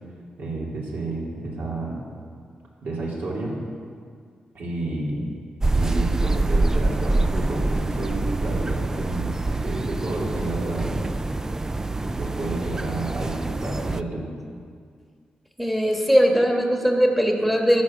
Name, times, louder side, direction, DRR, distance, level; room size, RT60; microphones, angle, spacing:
voice 1, 0.4-2.0 2.8-3.6 4.5-5.3 5.7-14.3, right 2 dB, 70° right, -4 dB, 3.0 m, -30 dB
sound 1, 5.6-14.0, right 2 dB, 15° right, 0.3 m, -25 dB
voice 2, 15.6-17.8, equal, ahead, 2 dB, 1.4 m, -20 dB
11.5 x 7.5 x 7.0 m, 2.1 s
cardioid pair, 105°, 3 cm